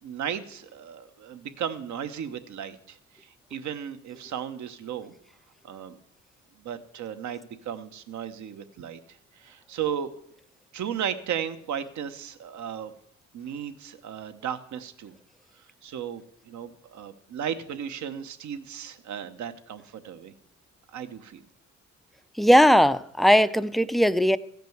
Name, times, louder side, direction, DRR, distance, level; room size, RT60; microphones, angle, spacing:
voice 1, 0.0-5.1 5.6-6.0 6.6-9.0 9.4-10.1 10.7-12.9 13.3-15.2 15.8-20.3 20.9-21.4, right 8 dB, 70° right, 1.1 m, -35 dB
voice 2, 22.4-24.4, equal, ahead, 0.4 m, -18 dB
15.0 x 5.2 x 7.9 m
cardioid pair, 90°, 30 cm